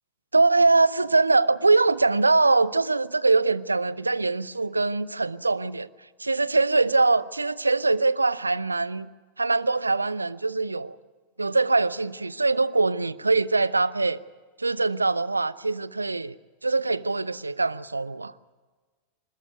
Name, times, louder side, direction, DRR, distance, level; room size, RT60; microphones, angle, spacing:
voice 1, 0.3-5.9 6.2-9.1 9.4-11.0 11.4-14.2 14.6-16.4 16.6-18.3, right 3 dB, 80° right, 0.6 m, -23 dB
25.5 x 13.5 x 9.4 m
figure-of-eight pair, 90°, 0 cm